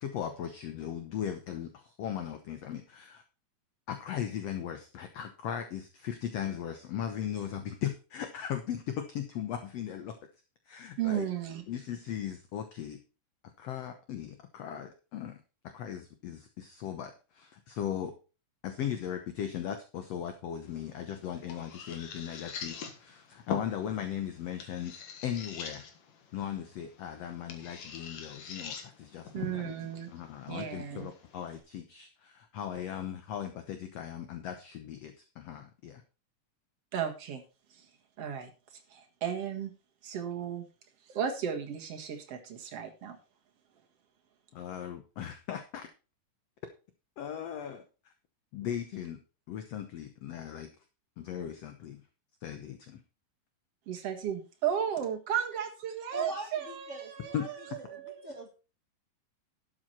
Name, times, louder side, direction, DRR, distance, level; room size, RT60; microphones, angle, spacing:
voice 1, 0.0-3.2 3.9-10.2 10.7-11.3 11.7-13.0 13.6-15.4 15.6-18.1 18.6-25.9 26.3-29.7 30.1-36.0 44.5-45.9 47.2-48.1 48.5-49.2 49.5-50.7 51.2-52.0 52.4-53.0 57.3-57.5, left 9 dB, 65° left, 7 dB, 1.8 m, -38 dB
voice 2, 11.0-11.6 29.3-30.1 30.5-31.1 36.9-37.4 37.7-37.9 38.2-38.5 38.9-39.7 40.0-40.7 41.1-43.2 53.9-58.4, right 9 dB, 50° right, 3 dB, 2.4 m, -34 dB
sound 1, 20.6-31.6, left 6 dB, 80° left, 3.2 m, -45 dB
voice 3, 56.1-57.5 58.2-58.5, right 2 dB, 85° right, 2 dB, 0.6 m, -41 dB
12.0 x 7.8 x 4.3 m, 0.33 s
omnidirectional pair, 3.8 m